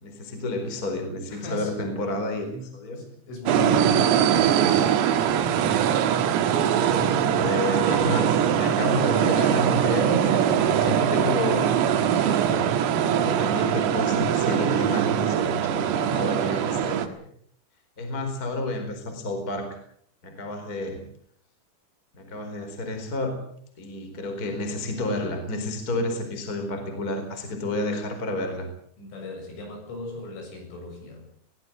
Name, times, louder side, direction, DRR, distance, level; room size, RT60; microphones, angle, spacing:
voice 1, 0.0-2.5 2.7-3.0 6.7-11.8 12.1-17.3 18.0-19.7 20.2-21.1 22.1-23.4 23.8-28.7, left 2 dB, 20° left, 6 dB, 4.0 m, -30 dB
voice 2, 1.3-1.9 2.5-2.7 3.0-5.9 29.0-31.3, left 1 dB, 70° left, 3 dB, 9.5 m, -38 dB
sound 1, 3.5-17.1, right 9 dB, 90° right, 4.4 m, -22 dB
21.5 x 18.5 x 7.9 m, 0.62 s
omnidirectional pair, 5.8 m